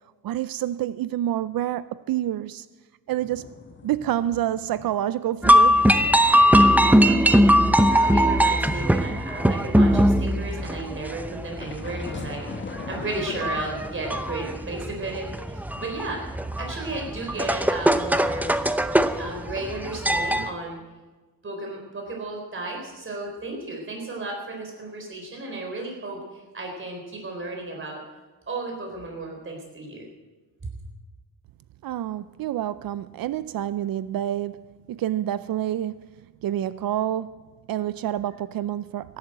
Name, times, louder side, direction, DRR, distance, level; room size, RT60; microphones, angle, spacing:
voice 1, 0.2-2.7 3.1-3.4 3.8-5.8 31.8-34.6 34.9-36.1 36.4-37.4 37.7-39.2, right 12 dB, 75° right, 15 dB, 0.5 m, -28 dB
sound 1, 3.1-5.0 5.3-5.6 6.0-9.6 10.5-13.6, left 4 dB, 35° left, 1.4 m, -41 dB
sound 2, 5.4-20.5, equal, 5° right, 0.8 m, -21 dB
voice 2, 7.7-18.5 19.1-20.8 21.4-28.0 28.5-30.1 30.6-30.7, right 2 dB, 35° right, 0 dB, 4.2 m, -34 dB
16.0 x 11.5 x 7.8 m, 1.2 s
cardioid pair, 120°, 35 cm